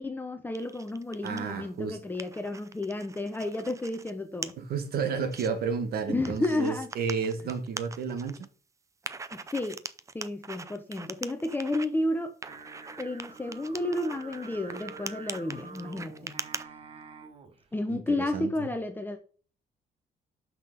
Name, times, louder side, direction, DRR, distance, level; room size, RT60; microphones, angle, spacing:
voice 1, 0.0-4.5 6.1-6.9 9.3-9.8 10.1-12.3 13.0-16.4 17.7-19.2, left 2 dB, 10° left, 0.8 m, -32 dB
sound 1, 0.5-1.5 1.9-4.1 4.4-4.5 5.0-5.5 6.3-8.5 9.0-11.9 12.4-16.6, right 4 dB, 20° right, 0.5 m, -41 dB
voice 2, 1.2-2.0 4.6-8.5 17.9-18.5, right 6 dB, 70° right, 1.5 m, -32 dB
Singing, 12.5-17.6, right 4 dB, 35° right, 1.1 m, -47 dB
5.9 x 5.8 x 5.4 m
cardioid pair, 155°, 16 cm